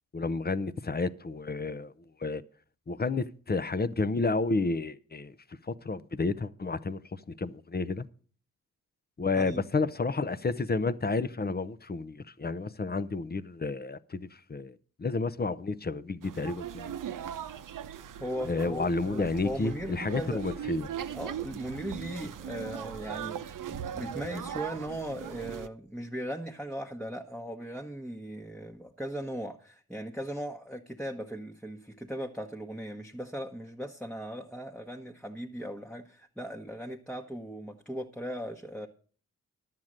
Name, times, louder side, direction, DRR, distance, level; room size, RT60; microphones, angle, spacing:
voice 1, 0.1-1.9 2.2-2.4 2.9-5.3 5.7-7.0 7.4-8.1 9.2-17.0 18.5-20.9, left 3 dB, 25° left, 0.7 m, -31 dB
sound 1, 16.2-25.7, right 9 dB, 60° right, 0.7 m, -39 dB
voice 2, 18.2-20.4 21.1-38.9, equal, 5° left, 1.1 m, -38 dB
10.5 x 7.5 x 6.4 m
supercardioid pair, 50°, 35 cm